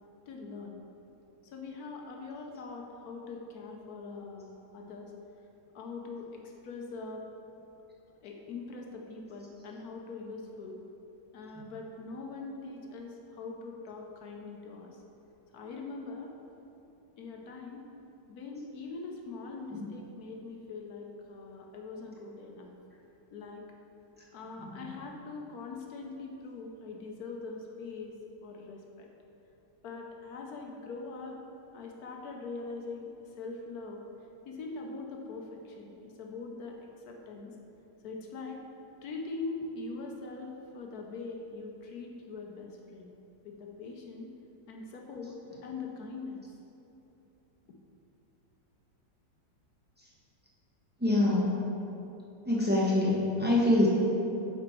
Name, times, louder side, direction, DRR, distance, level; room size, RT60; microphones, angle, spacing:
voice 1, 0.3-0.7 1.4-5.1 5.7-7.3 8.2-10.8 11.3-15.0 15.5-16.3 17.2-17.8 18.3-22.7 23.3-23.6 24.3-28.1 28.4-29.1 29.8-31.4 31.7-33.1 33.4-34.0 34.4-36.8 37.1-37.5 38.0-38.6 39.0-43.1 43.4-44.3 44.7-46.4, left 3 dB, 65° left, 0 dB, 1.0 m, -42 dB
voice 2, 51.0-51.5 52.5-53.9, left 1 dB, 15° right, -6 dB, 0.4 m, -25 dB
7.6 x 5.1 x 4.4 m, 3.0 s
omnidirectional pair, 2.0 m